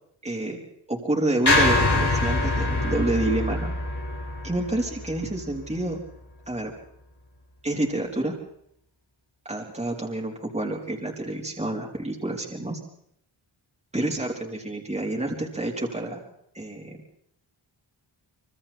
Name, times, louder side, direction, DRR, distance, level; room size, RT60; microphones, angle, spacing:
voice 1, 0.2-0.6 0.9-3.7 4.4-6.0 6.5-6.7 7.6-8.3 9.5-12.8 13.9-16.2 16.5-17.0, right 1 dB, 15° right, -2 dB, 4.0 m, -28 dB
sound 1, 1.4-5.8, left 2 dB, 55° left, 5.6 m, -24 dB
26.0 x 25.0 x 4.4 m, 0.71 s
wide cardioid pair, 110°, 46 cm